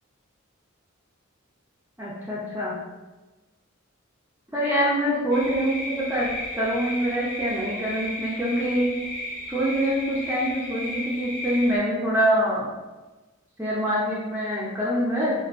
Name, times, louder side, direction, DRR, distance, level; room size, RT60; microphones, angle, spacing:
voice 1, 2.0-2.8 4.5-6.3 6.6-8.9 9.5-12.7 13.6-15.3, equal, 10° right, -7 dB, 0.4 m, -25 dB
sound 1, 5.3-11.8, left 1 dB, 25° left, 0.6 m, -34 dB
3.5 x 2.2 x 2.3 m, 1.2 s
head